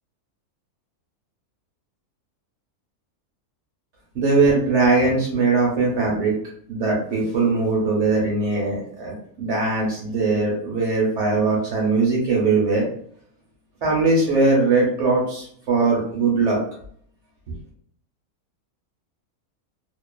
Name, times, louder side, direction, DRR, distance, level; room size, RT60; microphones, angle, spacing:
voice 1, 4.1-6.3 6.7-12.9 13.8-16.6, right 3 dB, 60° right, -3 dB, 0.8 m, -20 dB
2.5 x 2.3 x 2.2 m, 0.63 s
omnidirectional pair, 1.6 m